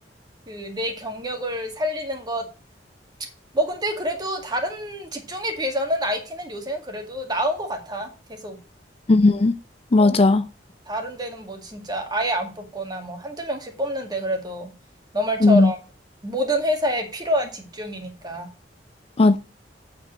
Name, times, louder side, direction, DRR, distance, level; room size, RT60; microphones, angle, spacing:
voice 1, 0.5-2.5 3.5-8.6 10.0-10.1 10.9-14.7 15.1-15.8 16.2-18.5, equal, 25° right, 2.1 m, -27 dB
voice 2, 9.1-9.5 9.9-10.5 15.4-15.7 19.2-19.4, left 2 dB, 35° left, 0.4 m, -16 dB
8.5 x 5.2 x 6.4 m
head